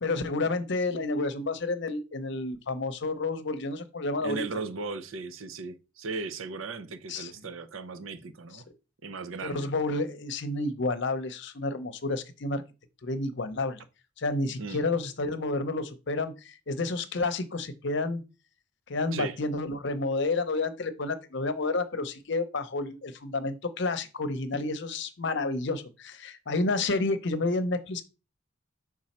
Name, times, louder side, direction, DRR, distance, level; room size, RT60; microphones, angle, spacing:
voice 1, 0.0-4.4 7.1-7.3 9.4-12.6 13.0-13.8 14.2-18.2 18.9-28.0, left 3 dB, 60° left, 0.7 m, -30 dB
voice 2, 4.2-8.7 9.0-9.7 14.6-14.9 19.1-19.4, right 4 dB, 85° right, 0.6 m, -37 dB
6.2 x 3.6 x 4.3 m
head